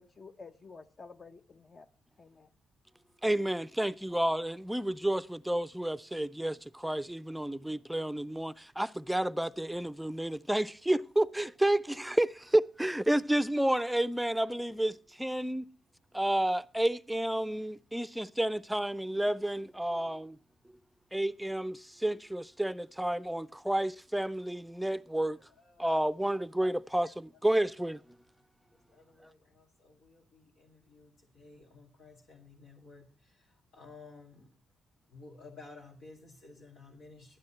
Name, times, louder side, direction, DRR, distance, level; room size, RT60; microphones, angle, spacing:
voice 1, 0.0-1.9 2.2-2.5, left 4 dB, 40° left, 0.9 m, -51 dB
voice 2, 3.2-15.7 16.1-20.4 21.1-25.4 25.8-28.0, right 1 dB, 5° right, 0.5 m, -30 dB
voice 3, 25.5-25.9 26.7-26.8 28.9-33.5 33.7-34.5 35.1-37.4, left 3 dB, 80° left, 2.2 m, -54 dB
11.5 x 9.6 x 4.3 m
supercardioid pair, 60°, 0 cm